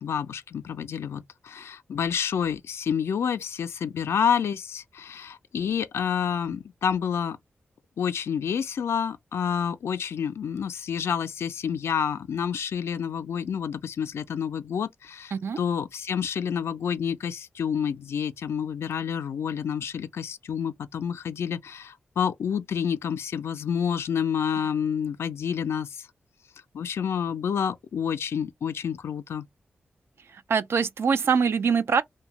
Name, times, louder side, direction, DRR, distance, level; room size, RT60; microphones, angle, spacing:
voice 1, 0.0-7.4 8.0-26.0 26.7-29.5, left 7 dB, 85° left, 0.4 m, -29 dB
voice 2, 30.5-32.0, right 6 dB, 70° right, 0.4 m, -23 dB
2.6 x 2.2 x 2.9 m
cardioid pair, 45°, 4 cm